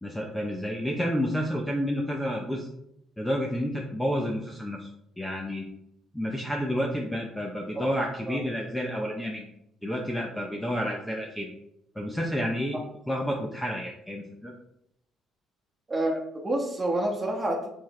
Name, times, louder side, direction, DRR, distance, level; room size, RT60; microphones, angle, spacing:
voice 1, 0.0-2.7 3.2-4.9 5.2-5.7 6.1-9.5 9.8-11.5 11.9-12.8 13.1-14.5, equal, 5° left, 0 dB, 0.6 m, -30 dB
voice 2, 15.9-17.7, right 1 dB, 20° right, -1 dB, 1.3 m, -28 dB
7.2 x 4.3 x 3.1 m, 0.77 s
cardioid pair, 145°, 0 cm